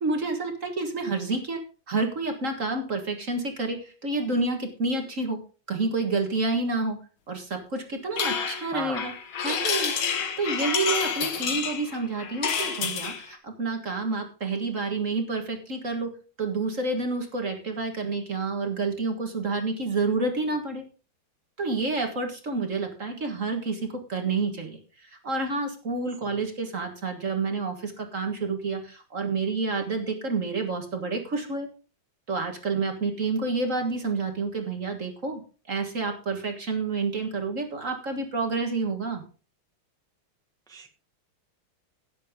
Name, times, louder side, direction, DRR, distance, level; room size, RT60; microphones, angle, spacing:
voice 1, 0.0-1.6 1.9-5.4 5.7-7.0 7.3-9.1 9.4-9.9 10.4-16.1 16.4-20.8 21.6-31.7 32.3-35.4 35.7-39.2, right 3 dB, 40° right, 4 dB, 1.9 m, -29 dB
sound 1, 8.2-13.3, left 6 dB, 85° left, 2.2 m, -29 dB
voice 2, 8.7-9.1 26.2-26.4 40.7-40.9, right 3 dB, ahead, 3 dB, 1.4 m, -36 dB
16.5 x 7.7 x 3.7 m, 0.36 s
omnidirectional pair, 2.2 m